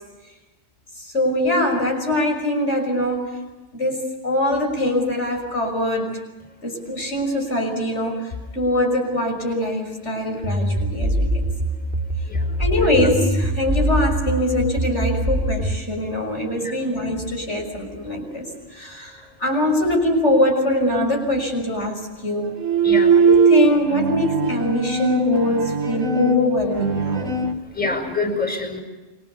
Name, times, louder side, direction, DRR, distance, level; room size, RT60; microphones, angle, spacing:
voice 1, 1.0-3.4 3.7-6.1 6.6-11.4 12.4-22.5 23.2-27.4 27.8-27.9, left 1 dB, 60° left, 2 dB, 6.5 m, -23 dB
sound 1, 10.4-15.8, right 1 dB, 40° right, 2.4 m, -23 dB
Bowed string instrument, 22.5-27.5, right 4 dB, 80° right, 1.9 m, -19 dB
voice 2, 22.8-23.2 27.7-28.8, left 3 dB, 5° left, 6 dB, 4.8 m, -26 dB
29.0 x 24.0 x 7.0 m, 1.1 s
omnidirectional pair, 1.3 m